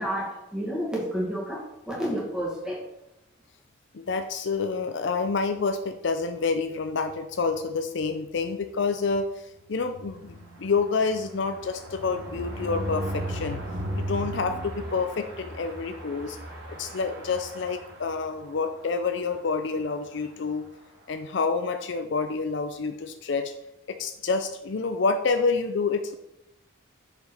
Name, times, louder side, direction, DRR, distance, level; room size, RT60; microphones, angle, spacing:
voice 1, 0.0-2.8, equal, 5° right, -4 dB, 1.9 m, -30 dB
voice 2, 3.9-16.4 16.7-20.7 21.1-23.5 23.9-26.2, left 4 dB, 55° left, 8 dB, 0.5 m, -28 dB
sound 1, 9.7-18.5 19.0-19.1 19.4-19.5 19.8-20.0, right 1 dB, 45° right, 2.4 m, -37 dB
6.6 x 5.0 x 4.9 m, 0.87 s
head